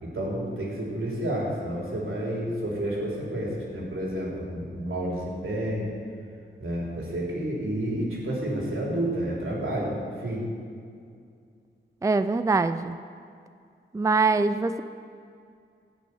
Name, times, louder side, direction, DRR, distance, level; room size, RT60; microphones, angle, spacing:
voice 1, 0.0-5.9 6.6-10.0 10.2-10.4, right 1 dB, 85° right, -4 dB, 3.7 m, -30 dB
voice 2, 12.0-13.0 13.9-14.8, right 3 dB, 15° right, 11 dB, 0.4 m, -23 dB
15.5 x 6.2 x 8.7 m, 2.3 s
wide cardioid pair, 85°, 20 cm